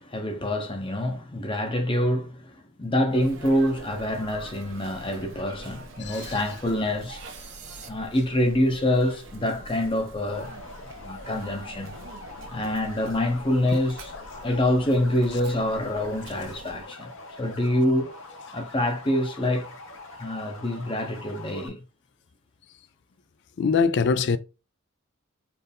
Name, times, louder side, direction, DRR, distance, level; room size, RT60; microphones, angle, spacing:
voice 1, 0.0-7.2 7.8-10.6 11.0-12.0 12.5-17.1 17.4-18.1 18.5-19.7 20.2-21.8, left 1 dB, 25° left, 0.7 m, -26 dB
Sneeze, 3.1-16.8, right 2 dB, 65° right, 0.8 m, -44 dB
voice 2, 6.0-6.4 14.1-14.2 23.6-24.4, left 5 dB, 55° left, 0.3 m, -23 dB
sound 1, 7.0-7.9, right 7 dB, 35° right, 0.6 m, -45 dB
sound 2, 10.3-21.7, left 3 dB, 75° left, 1.2 m, -44 dB
4.3 x 2.5 x 3.4 m
head